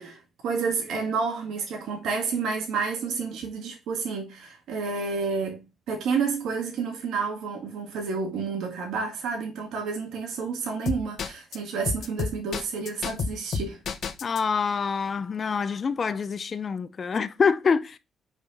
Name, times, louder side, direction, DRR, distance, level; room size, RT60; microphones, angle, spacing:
voice 1, 0.0-13.8, right 5 dB, 80° right, 2.2 m, -30 dB
sound 1, 10.9-11.6 11.9-14.4, left 5 dB, 60° left, 1.0 m, -29 dB
voice 2, 14.2-18.0, left 5 dB, 40° left, 0.7 m, -26 dB
5.2 x 5.2 x 6.4 m
cardioid pair, 90°, 0 cm